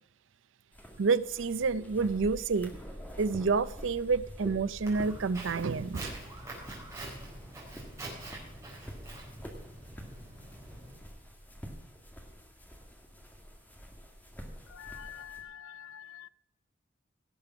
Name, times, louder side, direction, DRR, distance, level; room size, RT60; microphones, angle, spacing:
sound 1, 0.7-15.4, equal, 10° left, 1.9 m, -47 dB
voice 1, 1.0-2.7 3.2-6.1, right 4 dB, 75° right, 0.5 m, -29 dB
Walk footsteps, 4.9-10.9, right 1 dB, 15° right, 4.4 m, -45 dB
voice 2, 14.7-16.3, left 9 dB, 75° left, 0.5 m, -46 dB
17.5 x 6.9 x 5.8 m
head